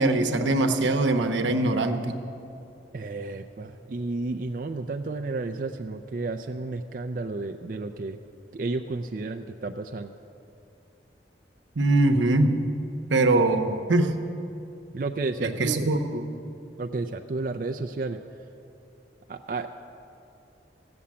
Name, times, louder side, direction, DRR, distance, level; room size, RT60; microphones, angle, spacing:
voice 1, 0.0-2.1 11.8-12.6 13.1-14.1 15.4-16.2, right 2 dB, 90° right, 6 dB, 0.9 m, -22 dB
voice 2, 2.9-8.2 8.5-10.1 14.9-15.9 16.8-18.2 19.3-19.7, right 3 dB, 45° right, 5 dB, 0.4 m, -32 dB
14.5 x 7.0 x 8.5 m, 2.8 s
head